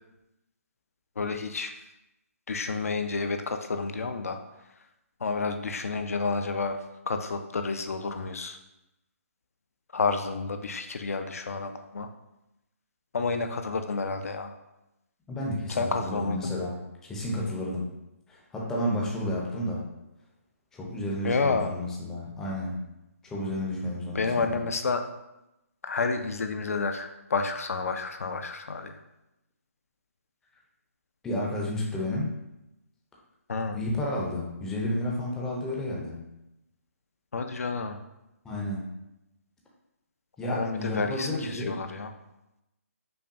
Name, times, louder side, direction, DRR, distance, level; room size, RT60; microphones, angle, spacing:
voice 1, 1.2-1.7 2.5-4.4 5.2-8.6 9.9-12.1 13.1-14.5 15.7-16.5 21.2-21.7 24.1-25.0 25.8-29.0 33.5-33.8 37.3-38.0 40.4-42.1, left 4 dB, 75° left, 7 dB, 0.4 m, -30 dB
voice 2, 15.3-16.8 17.0-17.9 18.3-19.8 20.7-22.8 23.2-24.6 31.2-32.3 33.7-36.2 38.4-38.8 40.4-41.8, left 1 dB, 5° left, -3 dB, 0.4 m, -31 dB
5.3 x 2.3 x 2.6 m, 0.91 s
figure-of-eight pair, 150°, 8 cm